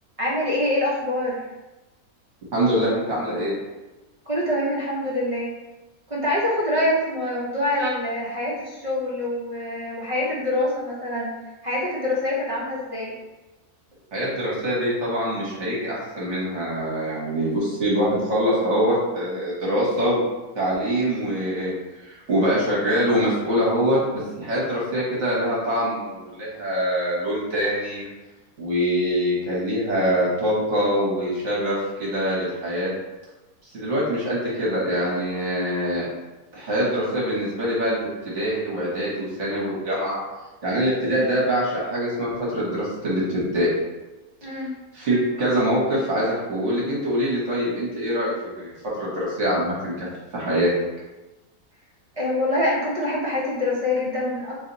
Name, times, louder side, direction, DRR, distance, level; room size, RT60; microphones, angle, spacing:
voice 1, 0.2-1.5 4.3-5.5 6.1-11.3 11.6-13.1 44.4-44.7 52.2-54.6, left 1 dB, 35° right, -6 dB, 0.5 m, -25 dB
voice 2, 2.5-3.6 7.7-7.9 14.1-20.2 20.5-21.7 22.0-28.0 28.6-32.9 33.7-36.1 36.5-40.2 40.6-43.7 44.5-44.6 44.9-48.7 49.0-50.1 50.3-50.7, equal, 55° right, -6 dB, 1.3 m, -24 dB
2.9 x 2.8 x 3.9 m, 1.1 s
omnidirectional pair, 1.6 m